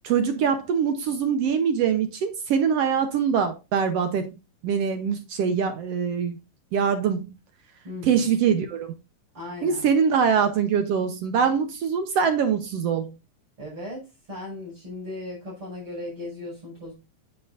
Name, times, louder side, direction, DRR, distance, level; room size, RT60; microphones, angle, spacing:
voice 1, 0.0-6.4 6.7-7.3 8.0-8.9 9.6-13.1, right 7 dB, 70° right, 1.7 m, -23 dB
voice 2, 7.8-8.3 9.3-9.9 13.6-16.9, left 2 dB, 45° right, 6.2 m, -37 dB
9.0 x 8.4 x 2.5 m
omnidirectional pair, 3.4 m